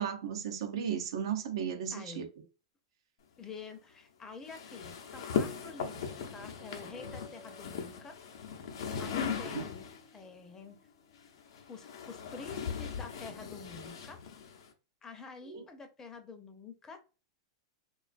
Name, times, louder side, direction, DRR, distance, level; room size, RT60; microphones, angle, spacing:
voice 1, 0.0-2.3 9.4-9.5 15.5-15.6, right 8 dB, 75° right, 0.5 m, -35 dB
voice 2, 1.9-2.3 3.4-8.2 9.0-10.8 11.7-14.2 15.0-17.0, left 4 dB, 20° left, 0.5 m, -48 dB
sound 1, 4.5-10.1 11.1-14.7, left 6 dB, 75° left, 0.6 m, -38 dB
sound 2, 6.4-10.7, equal, 55° right, 0.8 m, -55 dB
2.5 x 2.3 x 2.4 m
hypercardioid pair, 125°, 3 cm